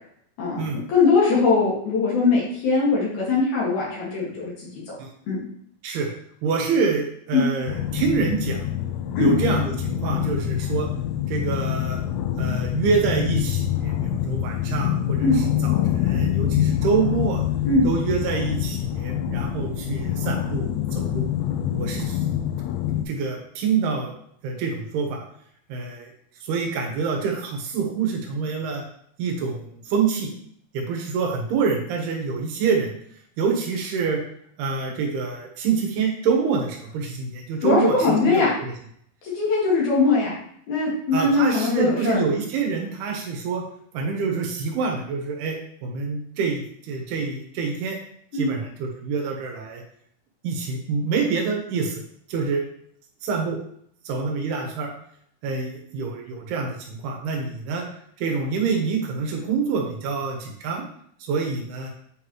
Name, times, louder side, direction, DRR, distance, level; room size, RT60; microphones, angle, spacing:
voice 1, 0.9-4.8 5.3-5.4 7.3-7.4 9.1-9.3 15.2-15.4 17.6-17.9 37.6-38.5 39.2-40.3 40.7-42.2 48.3-48.5, left 3 dB, 55° left, -5 dB, 2.9 m, -21 dB
voice 2, 6.4-8.6 9.2-10.9 11.3-12.0 12.4-17.4 17.8-21.3 21.7-22.2 23.1-24.1 24.4-25.2 25.7-26.1 26.4-28.8 29.2-30.3 30.7-32.9 33.4-34.2 34.6-38.7 41.1-43.6 43.9-48.0 48.3-49.8 50.4-52.0 52.3-52.6 53.2-53.6 54.0-54.9 55.4-57.8 58.2-60.8 61.2-61.9, right 5 dB, 80° right, 1 dB, 3.0 m, -26 dB
sound 1, 7.7-23.0, left 11 dB, 85° left, 2.1 m, -25 dB
sound 2, 16.0-18.7, left 8 dB, 60° right, 3.1 m, -38 dB
8.4 x 3.9 x 3.0 m, 0.66 s
omnidirectional pair, 4.6 m